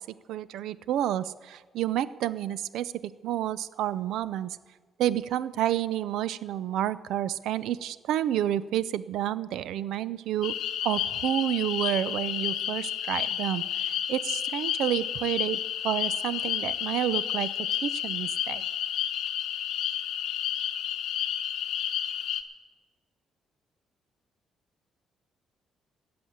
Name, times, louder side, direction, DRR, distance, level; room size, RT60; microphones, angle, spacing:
voice 1, 0.3-4.6 5.0-10.5 10.8-15.6 15.8-17.5 17.8-18.6, right 12 dB, 85° right, 17 dB, 0.4 m, -30 dB
sound 1, 10.4-22.4, left 10 dB, 90° left, 0.8 m, -31 dB
13.5 x 7.8 x 8.6 m, 1.4 s
cardioid pair, 155°, 0 cm